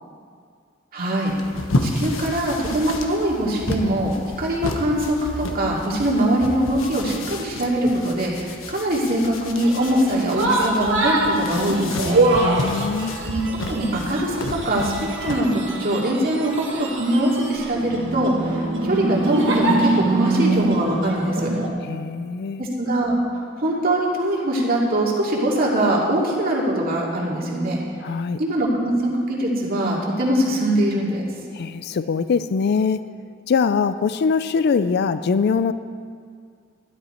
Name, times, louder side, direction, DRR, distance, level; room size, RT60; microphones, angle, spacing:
voice 1, 0.9-1.3 1.8-12.3 13.2-13.4 13.7-21.5 22.6-23.2 23.6-27.8 28.4-31.2, right 1 dB, 50° right, -3 dB, 2.4 m, -22 dB
Indoor Towel Dry Wooden Table, 1.3-15.4, left 1 dB, 90° left, 1.2 m, -31 dB
sound 1, 9.6-21.7, right 2 dB, 65° right, 1.8 m, -24 dB
voice 2, 12.4-13.2 21.8-22.7 28.0-28.4 31.5-33.0 33.5-35.7, left 5 dB, 55° left, 13 dB, 0.4 m, -22 dB
13.0 x 12.0 x 4.4 m, 2.2 s
head